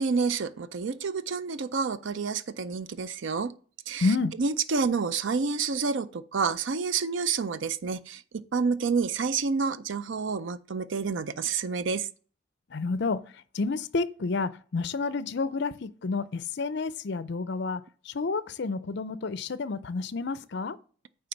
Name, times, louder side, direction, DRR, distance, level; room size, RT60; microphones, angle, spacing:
voice 1, 0.0-3.5 3.9-4.1 4.4-8.2 8.5-12.1, right 5 dB, 65° right, 0.5 m, -29 dB
voice 2, 4.0-4.3 12.7-20.8, left 4 dB, 55° left, 0.5 m, -30 dB
9.2 x 3.4 x 5.7 m
head